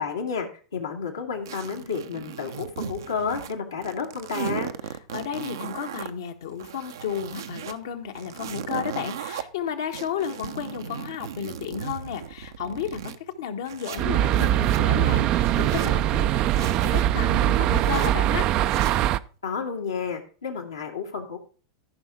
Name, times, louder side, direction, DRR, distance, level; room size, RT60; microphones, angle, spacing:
voice 1, 0.0-4.7 19.4-21.4, left 5 dB, 85° left, 2.2 m, -31 dB
sound 1, 1.5-3.5 3.8-6.1 6.5-7.7 8.1-9.4 9.9-13.2 13.6-14.8 15.3-15.9 16.5-17.0 17.6-18.1 18.6-19.1, right 9 dB, 70° right, 0.8 m, -37 dB
voice 2, 4.9-18.5, left 8 dB, 70° left, 1.5 m, -33 dB
sound 2, 14.0-19.2, right 13 dB, 45° right, 0.5 m, -22 dB
14.0 x 5.8 x 4.9 m
hypercardioid pair, 90°, 2 cm